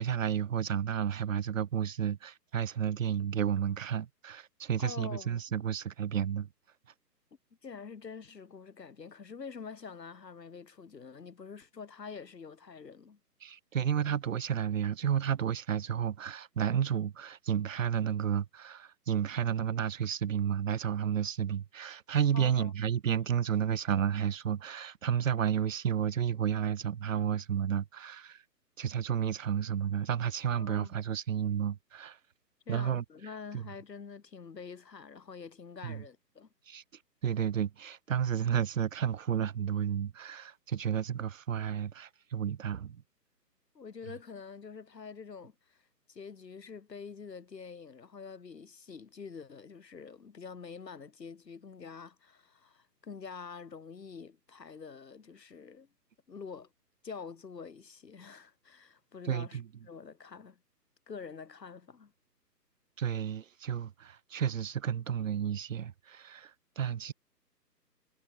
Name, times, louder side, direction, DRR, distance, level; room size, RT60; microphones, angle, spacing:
voice 1, 0.0-6.5 13.4-28.4 28.8-32.2 32.7-33.0 33.5-33.6 35.8-36.0 36.7-36.8 37.2-43.0 59.2-59.7 63.0-67.1, right 8 dB, 50° right, 1.1 m, -31 dB
voice 2, 4.8-5.4 7.6-13.2 22.3-22.7 30.6-31.0 32.7-36.5 43.7-45.8 46.1-55.9 56.3-56.7 57.0-60.6 61.1-62.1, left 5 dB, 75° left, 3.4 m, -46 dB
hypercardioid pair, 150°, 50 cm